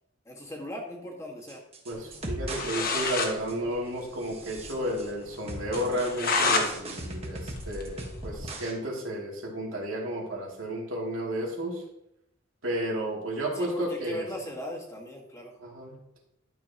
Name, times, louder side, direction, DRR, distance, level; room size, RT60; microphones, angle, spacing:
voice 1, 0.2-1.6 13.5-15.5, equal, 15° left, -2 dB, 1.7 m, -38 dB
sound 1, 1.5-2.7 3.0-3.7 4.2-5.1 5.5-8.7 9.0-9.1, right 1 dB, 30° right, 1.4 m, -39 dB
voice 2, 1.9-11.8 12.6-14.2 15.6-16.0, equal, 90° right, -3 dB, 2.7 m, -32 dB
sound 2, 2.3-2.4 2.5-3.3 3.7-3.8 4.0-4.1 4.5-4.6 5.0-5.1 5.7-6.7 7.1-8.4, left 4 dB, 45° left, 1.2 m, -28 dB
12.0 x 6.7 x 2.9 m, 0.82 s
head